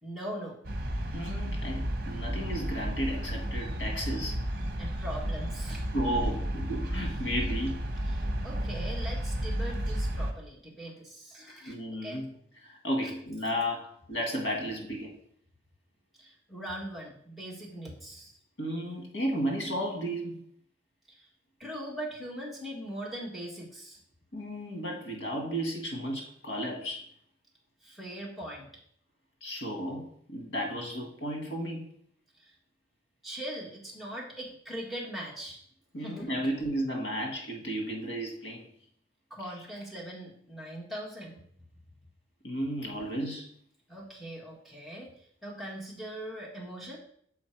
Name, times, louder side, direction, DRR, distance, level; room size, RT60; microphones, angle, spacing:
voice 1, 0.0-0.6 4.8-5.8 8.1-11.8 12.0-12.2 13.0-13.1 16.2-18.3 21.2-21.3 21.6-24.0 27.8-28.7 32.4-32.5 33.2-35.6 36.0-36.3 39.3-41.4 43.9-45.1 45.4-47.0, right 1 dB, ahead, -4 dB, 1.7 m, -40 dB
sound 1, 0.6-10.3, equal, 55° right, 0.9 m, -32 dB
voice 2, 1.1-4.4 5.9-7.8 11.6-12.3 12.6-15.1 18.6-20.4 24.3-27.1 29.4-31.8 35.9-38.7 42.4-43.5, equal, 80° left, 2 dB, 1.7 m, -33 dB
7.0 x 4.3 x 4.5 m, 0.64 s
head